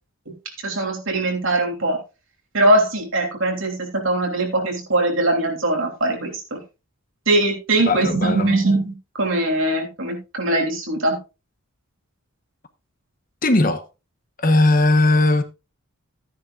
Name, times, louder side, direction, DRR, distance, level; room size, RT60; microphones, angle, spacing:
voice 1, 0.6-2.0 2.5-6.6 7.3-11.2, right 2 dB, 65° right, 3.1 m, -21 dB
voice 2, 7.9-8.5 13.4-13.8 14.4-15.4, left 2 dB, 40° left, 1.1 m, -18 dB
13.0 x 10.0 x 2.4 m
head